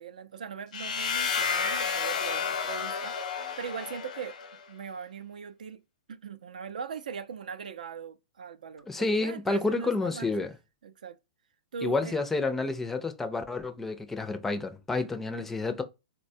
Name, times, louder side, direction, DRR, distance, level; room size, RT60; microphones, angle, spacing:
voice 1, 0.0-3.2 3.6-4.4 4.7-5.8 6.1-10.3 10.8-11.2 11.7-12.2, right 6 dB, 90° right, 0.5 m, -40 dB
sound 1, 0.7-4.6, left 6 dB, 80° left, 0.8 m, -31 dB
voice 2, 8.9-10.5 11.8-15.8, left 3 dB, 5° left, 0.4 m, -29 dB
4.0 x 2.1 x 2.6 m
hypercardioid pair, 155°, 4 cm